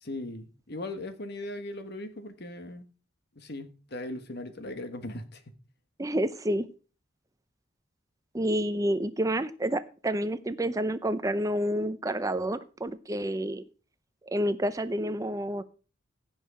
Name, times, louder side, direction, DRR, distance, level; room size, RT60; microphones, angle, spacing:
voice 1, 0.0-2.9 3.3-5.5, left 1 dB, 55° left, 1.4 m, -39 dB
voice 2, 6.0-6.7 8.3-13.6 14.3-15.6, right 1 dB, 15° right, 0.5 m, -29 dB
15.5 x 6.3 x 4.8 m
head